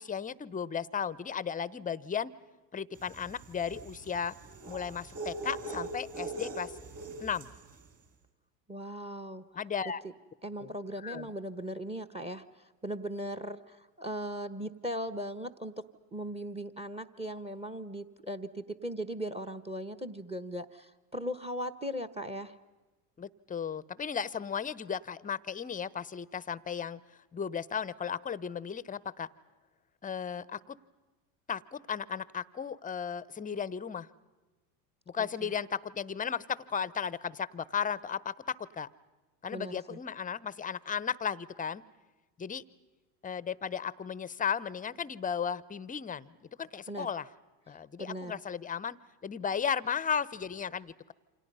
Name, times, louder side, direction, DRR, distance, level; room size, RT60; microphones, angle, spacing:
voice 1, 0.0-2.3 2.7-4.4 4.7-6.8 7.2-7.5 9.5-10.0 10.6-10.7 11.0-11.3 23.2-27.0 27.3-29.3 30.0-30.8 31.5-34.1 35.1-38.9 39.4-41.8 42.4-42.6 43.2-47.3 47.7-49.0 49.2-51.1, left 7 dB, 15° left, 20 dB, 0.7 m, -35 dB
sound 1, 3.1-7.6, right 3 dB, 30° right, 4.3 m, -41 dB
voice 2, 8.7-9.4 10.4-15.8 16.1-22.5 35.4-35.5 39.5-40.0 46.9-47.1 48.0-48.4, equal, 10° right, 15 dB, 1.1 m, -38 dB
28.5 x 26.5 x 5.5 m, 1.2 s
hypercardioid pair, 85°, 48 cm